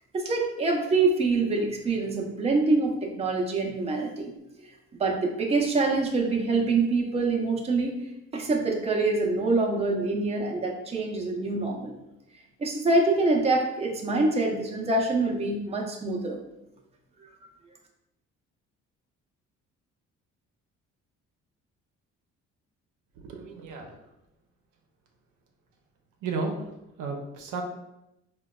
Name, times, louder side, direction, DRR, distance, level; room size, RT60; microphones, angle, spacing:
voice 1, 0.1-4.3 5.0-8.0 8.3-11.9 12.6-16.4, right 3 dB, 20° right, 0 dB, 0.5 m, -25 dB
voice 2, 23.2-24.0 26.2-26.6 27.0-27.6, right 4 dB, 80° right, 2 dB, 0.6 m, -33 dB
3.8 x 2.2 x 2.2 m, 0.88 s
cardioid pair, 90°, 30 cm